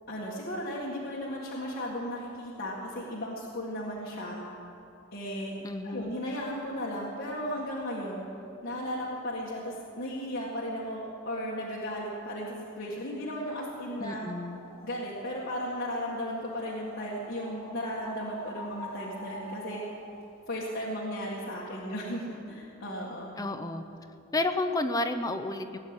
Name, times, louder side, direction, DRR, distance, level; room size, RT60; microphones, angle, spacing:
voice 1, 0.1-4.4 5.1-5.5 5.8-8.2 8.6-14.3 14.8-19.8 20.5-23.4, equal, 50° left, -6 dB, 1.9 m, -35 dB
voice 2, 5.6-6.1 14.0-14.6 23.4-23.8 24.3-25.8, left 2 dB, 15° left, 7 dB, 0.7 m, -31 dB
sound 1, 14.4-20.2, equal, 15° right, 3.3 m, -46 dB
18.5 x 7.4 x 9.7 m, 2.7 s
head